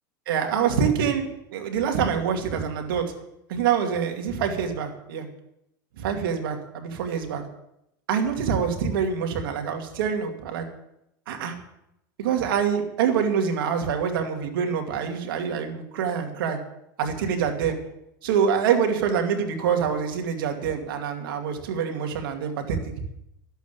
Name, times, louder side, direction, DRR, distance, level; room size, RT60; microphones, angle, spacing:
voice 1, 0.3-1.3 1.5-3.1 3.5-5.3 6.0-7.4 8.1-10.6 11.3-11.5 12.2-16.6 17.0-17.8 18.2-22.8, right 7 dB, 80° right, 4 dB, 2.5 m, -25 dB
12.0 x 8.2 x 8.4 m, 0.82 s
supercardioid pair, 125°, 11 cm